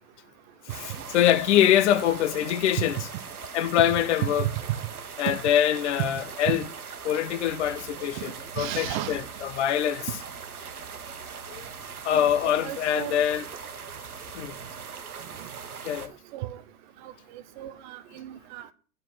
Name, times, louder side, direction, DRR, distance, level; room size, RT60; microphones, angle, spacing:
voice 1, 0.7-3.0 3.5-4.5 5.2-6.6 7.0-10.0 11.5-11.6 12.0-13.4 14.3-14.6 15.8-16.1, left 11 dB, 50° left, 0.8 m, -24 dB
sound 1, 0.7-16.1, right 6 dB, 80° right, 1.1 m, -40 dB
voice 2, 8.6-9.2 12.1-12.3 12.6-13.1 15.4-15.5 16.3-16.6 17.0-18.7, right 15 dB, 35° right, 0.6 m, -34 dB
8.9 x 4.4 x 6.2 m
figure-of-eight pair, 95°, 44 cm